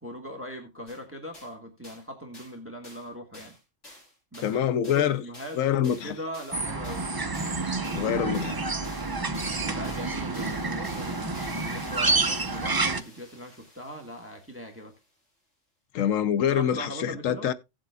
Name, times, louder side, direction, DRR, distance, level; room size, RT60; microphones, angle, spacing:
voice 1, 0.0-3.5 4.3-4.6 4.9-7.0 9.6-14.9 16.5-17.5, equal, 10° right, 1.6 m, -40 dB
sound 1, 0.9-1.0 1.3-1.5 1.8-2.0 2.3-2.5 2.8-3.1 3.3-14.8, left 1 dB, 65° left, 6.0 m, -49 dB
voice 2, 4.4-5.2 5.5-6.1 7.9-8.6 15.9-17.5, left 9 dB, 90° left, 1.1 m, -25 dB
sound 2, 6.5-13.0, right 3 dB, 25° right, 0.5 m, -29 dB
17.0 x 7.5 x 2.3 m
omnidirectional pair, 1.3 m